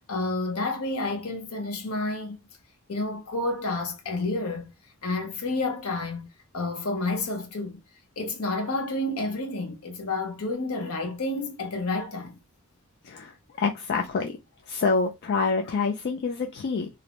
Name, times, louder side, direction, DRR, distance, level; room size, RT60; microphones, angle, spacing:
voice 1, 0.1-2.5 2.9-4.7 5.0-6.3 6.5-7.8 8.2-12.4 13.9-14.0, left 2 dB, 70° left, 0.7 m, -30 dB
voice 2, 13.0-14.4 14.7-16.9, left 4 dB, 50° left, 0.3 m, -27 dB
2.5 x 2.1 x 2.9 m
head